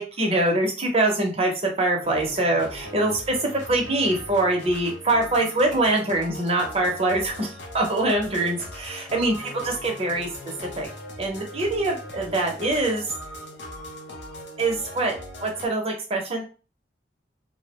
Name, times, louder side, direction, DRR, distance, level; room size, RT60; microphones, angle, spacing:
voice 1, 0.0-7.5 7.7-10.3 10.8-10.9 11.2-13.0 14.6-15.1 15.4-16.4, right 2 dB, 35° right, 1 dB, 0.6 m, -24 dB
sound 1, 2.0-15.7, left 1 dB, 85° left, 0.6 m, -40 dB
2.4 x 2.0 x 2.9 m, 0.35 s
head